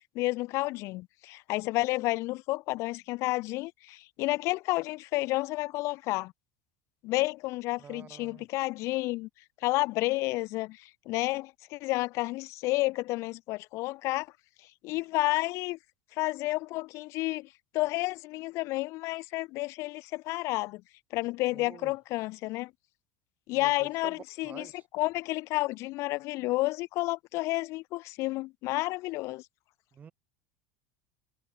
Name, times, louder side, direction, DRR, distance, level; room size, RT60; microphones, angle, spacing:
voice 1, 0.2-6.3 7.0-9.3 9.6-14.3 14.8-15.8 16.1-17.5 17.7-20.8 21.1-22.7 23.5-24.7 24.9-29.4, left 20 dB, 55° left, 0.4 m, -31 dB
voice 2, 7.8-8.5 21.5-21.9 23.5-24.8 29.9-30.1, right 7 dB, 25° right, 0.8 m, -48 dB
supercardioid pair, 120°, 6 cm